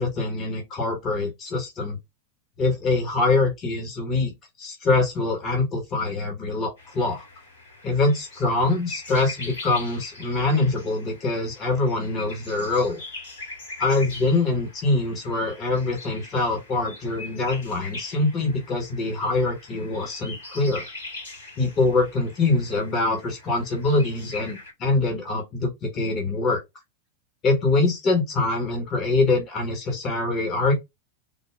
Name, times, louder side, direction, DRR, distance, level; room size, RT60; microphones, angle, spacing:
voice 1, 0.0-2.0 2.6-7.2 7.8-13.0 13.8-20.8 21.6-26.6 27.4-30.7, left 3 dB, 30° left, 1.7 m, -24 dB
sound 1, 6.8-24.7, left 2 dB, 65° left, 2.9 m, -42 dB
4.1 x 2.5 x 3.6 m
figure-of-eight pair, 90°, 0 cm